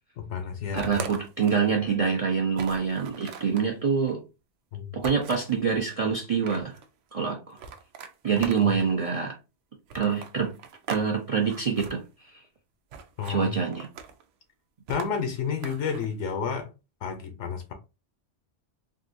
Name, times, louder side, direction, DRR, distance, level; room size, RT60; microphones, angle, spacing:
voice 1, 0.2-1.1 4.7-5.0 8.6-8.7 13.2-13.5 14.9-16.7 17.0-17.7, left 6 dB, 80° left, 0.9 m, -31 dB
voice 2, 0.7-4.2 4.9-6.8 7.1-7.6 8.2-9.4 9.9-10.5 10.9-12.0 12.3-12.4 13.3-13.9, right 6 dB, 45° right, 0.5 m, -26 dB
sound 1, 0.8-1.7 2.1-2.2 2.5-3.7 5.0-5.6 6.2-6.9 7.6-8.9 9.9-11.1 11.3-11.9 12.9-13.4 13.7-14.2 14.9-16.1, right 6 dB, 90° right, 0.9 m, -40 dB
3.6 x 2.5 x 2.5 m
omnidirectional pair, 1.2 m